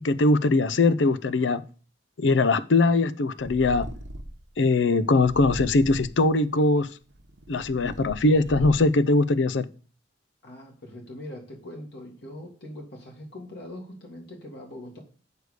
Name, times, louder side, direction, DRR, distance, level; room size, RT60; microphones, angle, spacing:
voice 1, 0.0-1.6 2.2-3.9 4.6-6.9 7.5-9.7, left 2 dB, 85° left, 15 dB, 0.6 m, -21 dB
Purr, 3.4-4.5 5.2-6.2 7.0-9.1, right 1 dB, 85° right, 0.9 m, -38 dB
voice 2, 10.4-15.0, left 1 dB, 65° left, -1 dB, 1.9 m, -42 dB
6.5 x 4.9 x 6.5 m, 0.39 s
head